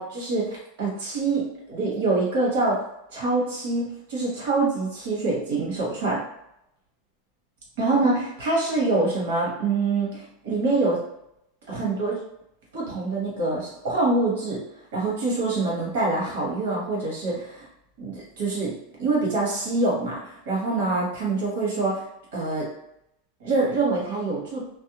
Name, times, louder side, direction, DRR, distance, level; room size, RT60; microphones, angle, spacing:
voice 1, 0.0-2.8 3.1-6.2 7.8-11.0 11.7-12.2 12.7-14.6 14.9-17.7 18.0-18.7 19.0-22.0 22.3-22.7 23.4-24.6, right 3 dB, 85° right, -4 dB, 1.3 m, -25 dB
2.6 x 2.1 x 2.8 m, 0.81 s
supercardioid pair, 160°, 0 cm